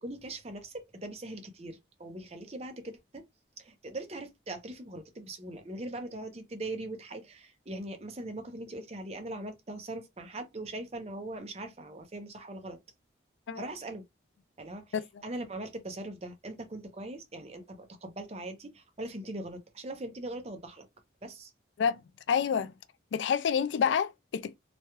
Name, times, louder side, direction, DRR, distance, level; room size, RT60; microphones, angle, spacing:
voice 1, 0.0-3.2 3.6-12.8 13.5-14.0 14.6-14.9 15.2-20.9 21.2-21.5, right 1 dB, 35° right, 0.6 m, -41 dB
voice 2, 14.9-15.2 21.8-22.0 22.3-22.7 23.1-24.6, left 7 dB, 75° left, 0.3 m, -28 dB
3.0 x 2.3 x 2.9 m
head